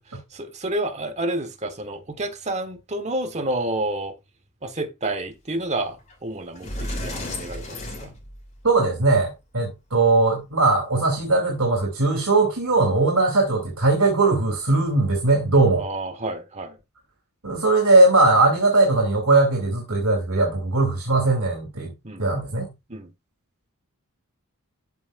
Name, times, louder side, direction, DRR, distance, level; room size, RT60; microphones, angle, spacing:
voice 1, 0.3-4.2 4.6-8.1 15.8-16.8 22.0-22.3 22.9-23.1, right 1 dB, 30° right, 1.4 m, -29 dB
Sliding door, 6.1-6.2 6.6-8.8, left 1 dB, 30° left, 2.7 m, -33 dB
voice 2, 8.6-15.8 17.4-21.9 22.2-22.7, right 2 dB, 65° right, 2.9 m, -19 dB
13.5 x 5.7 x 2.5 m
head